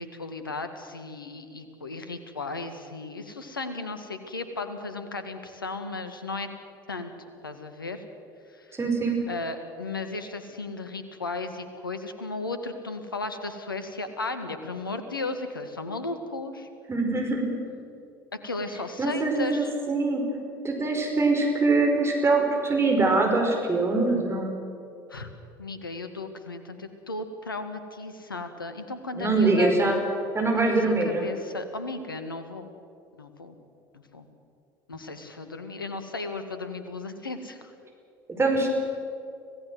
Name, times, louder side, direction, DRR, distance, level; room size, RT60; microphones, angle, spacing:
voice 1, 0.0-6.5 6.9-7.1 7.4-8.0 8.5-8.8 9.3-16.7 18.4-19.7 25.1-25.3 25.6-29.7 30.7-32.7 33.1-33.6 33.9-34.3 34.9-37.7, left 3 dB, 90° left, 9 dB, 1.7 m, -35 dB
voice 2, 8.8-9.2 16.9-17.6 19.0-20.3 20.6-24.5 29.1-30.0 30.3-31.3 38.3-38.7, right 3 dB, 25° right, 2 dB, 5.3 m, -23 dB
25.5 x 17.5 x 7.8 m, 2.5 s
figure-of-eight pair, 65°, 11 cm